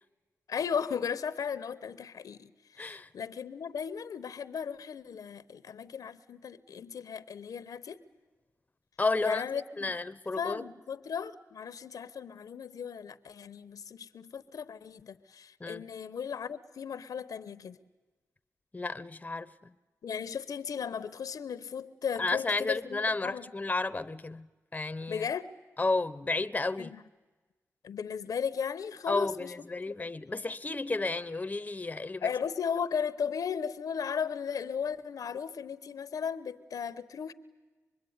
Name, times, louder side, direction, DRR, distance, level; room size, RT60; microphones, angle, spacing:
voice 1, 0.5-2.5 2.8-8.0 9.2-9.9 10.4-17.8 20.0-23.5 25.1-25.5 26.8-27.0 27.8-29.5 29.9-30.1 32.2-37.3, left 7 dB, 90° left, 0.9 m, -36 dB
voice 2, 2.8-3.1 9.0-10.6 15.6-15.8 18.7-19.5 22.2-24.5 24.7-25.3 25.8-26.9 29.1-32.3, left 3 dB, 25° left, 0.8 m, -32 dB
25.5 x 21.5 x 9.5 m
cardioid pair, 70°, 6 cm